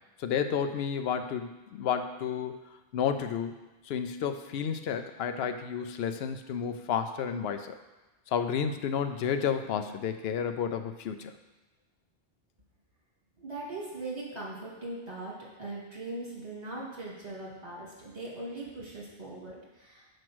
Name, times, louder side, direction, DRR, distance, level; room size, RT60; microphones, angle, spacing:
voice 1, 0.2-2.6 2.9-3.5 3.9-7.8 8.3-11.3, left 7 dB, 75° left, 8 dB, 0.8 m, -31 dB
voice 2, 13.4-20.1, right 2 dB, 40° right, -5 dB, 2.3 m, -40 dB
6.0 x 4.8 x 6.1 m, 1.1 s
omnidirectional pair, 1.0 m